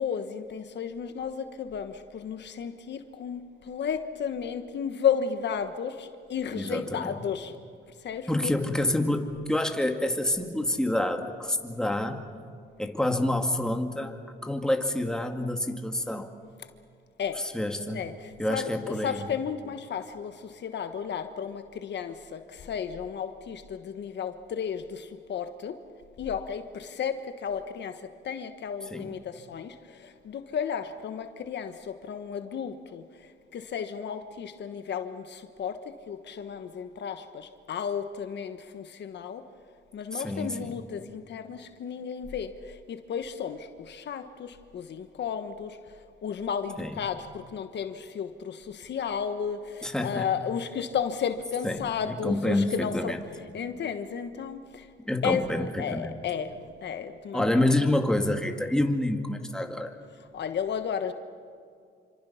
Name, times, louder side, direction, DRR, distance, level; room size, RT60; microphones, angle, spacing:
voice 1, 0.0-7.5 8.0-8.5 17.2-17.4 17.9-18.7 19.0-25.8 26.2-35.8 36.1-39.4 39.9-45.8 46.2-54.9 55.2-55.4 55.8-56.5 56.8-57.6 60.3-61.1, left 7 dB, 60° left, 9 dB, 1.3 m, -33 dB
voice 2, 6.5-7.2 8.3-12.2 12.8-14.2 14.4-16.3 17.4-18.1 18.4-19.2 28.9-29.2 40.1-40.8 46.8-47.0 49.8-50.3 51.6-53.2 55.1-56.1 57.3-60.0, left 1 dB, 5° left, 4 dB, 2.2 m, -28 dB
27.5 x 25.5 x 5.8 m, 2.3 s
cardioid pair, 90°, 20 cm